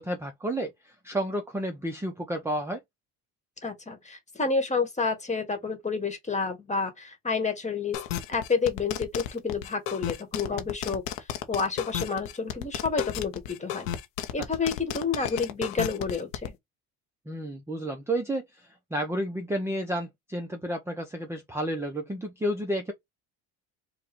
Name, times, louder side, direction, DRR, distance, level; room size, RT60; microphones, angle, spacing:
voice 1, 0.0-2.8 17.3-22.9, right 1 dB, 5° right, 0.6 m, -31 dB
voice 2, 3.6-8.0 8.3-13.9 14.3-16.6, left 4 dB, 20° left, 1.4 m, -29 dB
sound 1, 7.9-16.5, left 11 dB, 90° left, 0.7 m, -33 dB
4.7 x 2.3 x 3.0 m
supercardioid pair, 90°, 37 cm